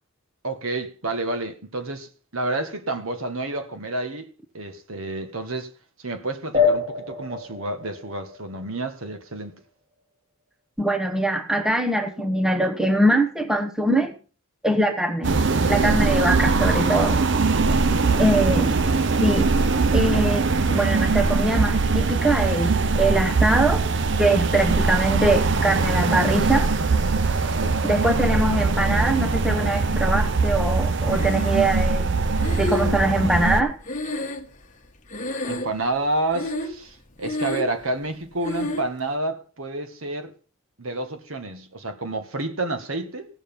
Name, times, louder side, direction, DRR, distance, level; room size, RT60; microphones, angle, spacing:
voice 1, 0.4-4.3 4.5-5.7 6.0-9.5 17.6-18.2 27.4-27.9 35.5-40.3 40.8-43.3, right 2 dB, 70° right, 1.7 m, -29 dB
sound 1, 6.5-9.5, left 5 dB, 35° right, 2.7 m, -26 dB
voice 2, 10.8-14.1 14.6-15.3 15.7-17.3 18.2-18.8 19.2-19.5 19.9-23.9 24.2-26.7 27.8-32.1 32.5-33.8, right 1 dB, 5° right, 1.0 m, -22 dB
sound 2, 15.2-33.6, right 4 dB, 55° right, 0.7 m, -21 dB
Breathing, 31.1-31.8 32.4-34.8 35.1-35.9 36.3-36.9 37.2-37.8 38.4-38.9, left 2 dB, 35° left, 1.4 m, -30 dB
16.5 x 7.1 x 5.5 m
head